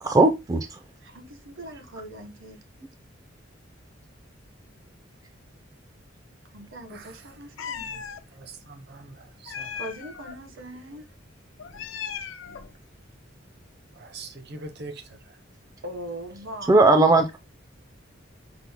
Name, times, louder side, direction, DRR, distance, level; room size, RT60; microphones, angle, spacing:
voice 1, 0.0-0.8 16.7-17.4, right 2 dB, 20° right, 0.3 m, -18 dB
voice 2, 1.0-2.6 6.5-8.0 9.8-11.1 15.8-17.4, right 1 dB, 70° right, 1.0 m, -41 dB
voice 3, 6.9-7.3 7.9-8.0 8.3-9.8 14.0-15.4, right 3 dB, 55° right, 0.6 m, -43 dB
Meow, 7.6-8.2 9.5-10.4 11.6-12.7, left 7 dB, 80° left, 0.5 m, -37 dB
5.9 x 2.0 x 3.5 m
head